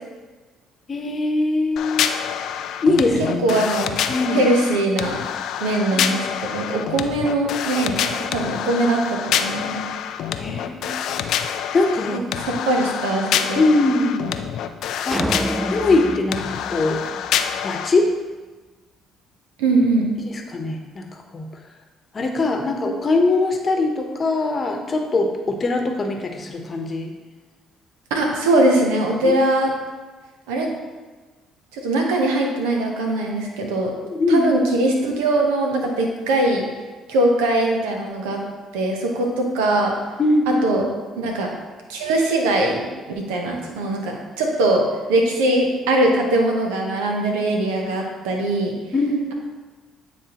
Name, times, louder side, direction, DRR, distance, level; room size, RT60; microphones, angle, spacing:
voice 1, 0.9-2.1 2.8-3.6 4.1-4.4 5.9-6.1 10.4-11.1 11.7-12.2 13.6-14.4 15.0-15.3 15.6-17.0 17.6-18.1 20.3-21.1 21.3-21.5 22.1-27.1 29.2-29.3 34.1-34.5 40.2-40.6 48.9-49.3, left 2 dB, 40° left, 4 dB, 0.9 m, -21 dB
sound 1, 1.8-17.9, left 9 dB, 70° left, 0.3 m, -27 dB
voice 2, 3.2-5.2 5.6-9.8 12.1-13.6 19.6-20.1 28.1-29.7 30.5-30.7 31.7-33.9 34.3-36.6 37.1-38.4 38.7-39.9 40.5-40.9 41.2-41.5 41.9-42.8 43.1-48.7, right 2 dB, 85° right, 1 dB, 0.9 m, -21 dB
sound 2, 15.1-17.6, right 1 dB, 15° right, 0.3 m, -28 dB
9.0 x 3.5 x 2.9 m, 1.3 s
hypercardioid pair, 60°, 0 cm